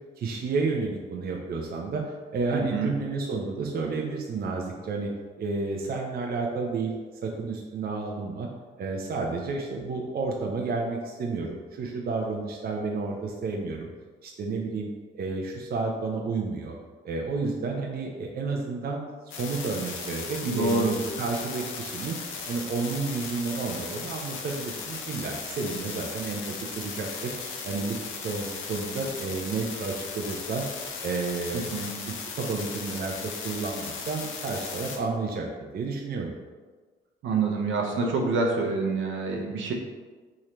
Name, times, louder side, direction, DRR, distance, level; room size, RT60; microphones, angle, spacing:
voice 1, 0.2-5.1 5.4-6.9 7.2-8.5 8.8-13.9 14.2-14.9 15.1-16.8 17.0-22.2 22.5-27.3 27.6-30.7 31.0-31.7 32.1-36.3, right 4 dB, 50° right, 0 dB, 0.6 m, -31 dB
sound 1, 19.3-35.0, left 5 dB, 85° left, 0.7 m, -37 dB
voice 2, 20.4-20.9 31.7-31.9 37.2-39.7, right 3 dB, 75° right, 1 dB, 0.8 m, -26 dB
3.7 x 3.2 x 4.3 m, 1.4 s
cardioid pair, 90°, 20 cm